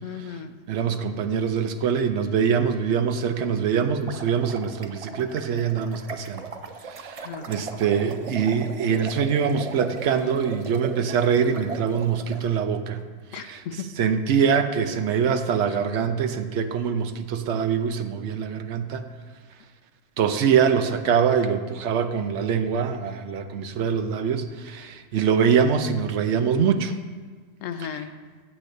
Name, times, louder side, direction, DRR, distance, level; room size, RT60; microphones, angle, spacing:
voice 1, 0.0-0.6 7.2-7.6 13.3-14.1 27.6-28.2, left 7 dB, 80° left, 10 dB, 1.0 m, -36 dB
voice 2, 0.7-6.4 6.9-13.0 13.5-13.6 14.0-19.0 20.2-27.0, right 7 dB, 65° right, 9 dB, 0.9 m, -24 dB
sound 1, 4.1-12.4, right 5 dB, 45° right, 0.4 m, -38 dB
14.5 x 8.1 x 2.7 m, 1.4 s
omnidirectional pair, 1.3 m